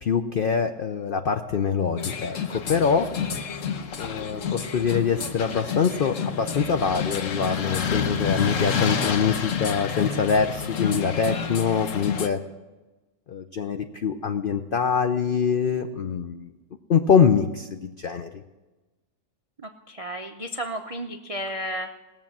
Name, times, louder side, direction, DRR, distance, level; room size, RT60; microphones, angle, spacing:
voice 1, 0.0-2.4 2.7-3.1 4.0-12.4 13.3-16.5 16.9-18.3, left 6 dB, 80° left, 7 dB, 0.4 m, -24 dB
sound 1, 2.0-12.3, left 6 dB, 60° left, 1.1 m, -29 dB
voice 2, 19.6-21.9, equal, 60° right, 4 dB, 0.3 m, -33 dB
19.0 x 7.3 x 7.2 m, 1.2 s
omnidirectional pair, 1.7 m